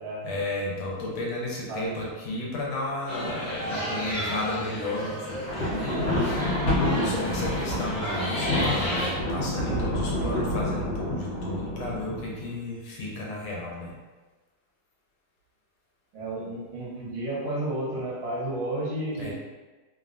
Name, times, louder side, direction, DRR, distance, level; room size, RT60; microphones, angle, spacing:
voice 1, 0.2-6.1 6.9-14.0 19.1-19.3, left 2 dB, 80° left, -3 dB, 1.4 m, -33 dB
sound 1, 3.1-9.1, equal, 45° left, 0.5 m, -32 dB
Thunder, 5.3-12.5, left 1 dB, 60° left, 1.3 m, -28 dB
voice 2, 16.1-19.3, right 1 dB, 65° right, -8 dB, 1.5 m, -32 dB
3.5 x 2.1 x 2.4 m, 1.2 s
omnidirectional pair, 2.3 m